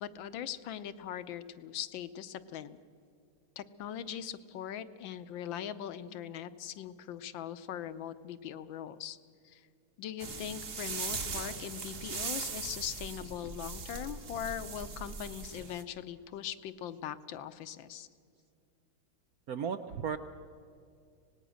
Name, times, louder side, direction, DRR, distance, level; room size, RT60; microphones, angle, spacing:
voice 1, 0.0-2.8 3.6-9.2 9.4-9.7 10.0-18.1, left 10 dB, 70° left, 13 dB, 1.4 m, -41 dB
sound 1, 10.2-15.8, right 4 dB, 40° right, 1.5 m, -40 dB
voice 2, 19.5-20.2, right 7 dB, 75° right, 10 dB, 0.8 m, -34 dB
25.5 x 19.0 x 6.3 m, 2.3 s
omnidirectional pair, 2.3 m